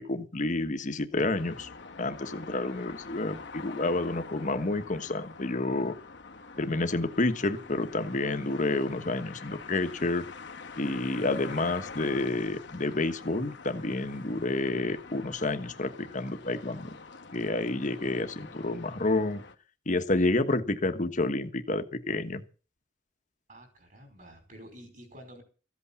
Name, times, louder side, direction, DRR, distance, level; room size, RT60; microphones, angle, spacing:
voice 1, 0.0-1.7 2.0-5.9 6.6-10.2 10.8-17.0 17.3-19.4 19.9-22.4, left 2 dB, 45° left, 9 dB, 1.4 m, -29 dB
sound 1, 1.3-19.5, left 4 dB, 70° left, 1.5 m, -45 dB
voice 2, 23.5-25.4, equal, 45° right, 6 dB, 5.2 m, -49 dB
15.0 x 8.5 x 7.1 m, 0.36 s
head